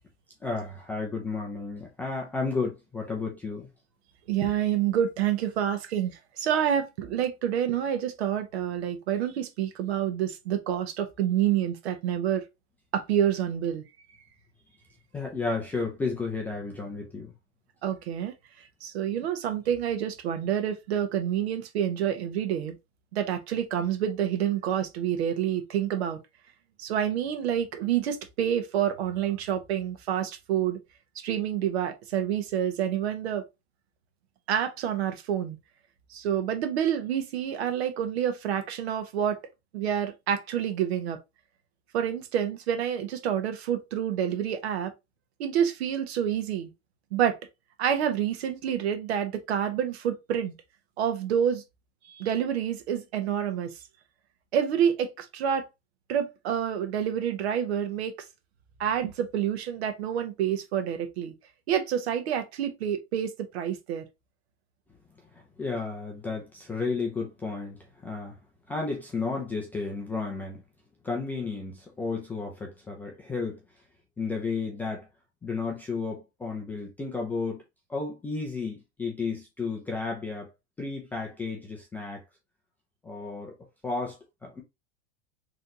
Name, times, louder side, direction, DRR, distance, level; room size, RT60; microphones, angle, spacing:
voice 1, 0.4-3.7 15.1-17.3 65.6-67.8 68.0-68.3 68.7-70.6 71.0-73.6 74.2-75.1 75.4-77.6 77.9-80.5 80.8-82.2 83.0-83.5 83.8-84.6, left 4 dB, 5° left, 0.3 m, -32 dB
voice 2, 4.3-12.4 12.9-13.8 17.8-18.3 18.8-22.8 23.1-26.2 26.8-30.8 31.1-33.4 34.5-35.6 36.1-39.4 39.7-41.2 41.9-44.9 45.4-46.7 47.1-47.4 47.8-50.5 51.0-51.6 52.1-53.7 54.5-55.7 56.1-58.1 58.8-61.3 61.7-64.1, right 9 dB, 70° right, 1.2 m, -28 dB
4.0 x 3.3 x 2.8 m
supercardioid pair, 160°, 33 cm